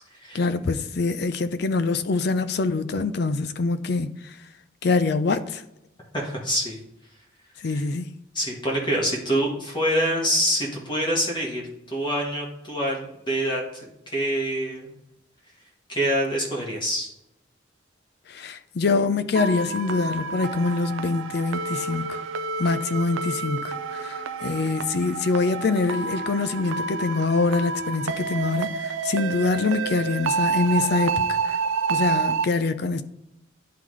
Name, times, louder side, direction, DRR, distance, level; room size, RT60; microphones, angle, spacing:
voice 1, 0.3-4.3 4.8-5.6 7.6-8.1 18.3-22.2 22.6-31.6 31.9-33.0, left 3 dB, 55° left, 0.4 m, -25 dB
voice 2, 6.1-6.8 7.6-7.8 8.3-11.6 11.9-14.9 15.9-17.1, equal, 25° left, 1.3 m, -26 dB
sound 1, 19.4-32.5, right 5 dB, 70° right, 0.4 m, -29 dB
10.0 x 3.8 x 3.1 m
head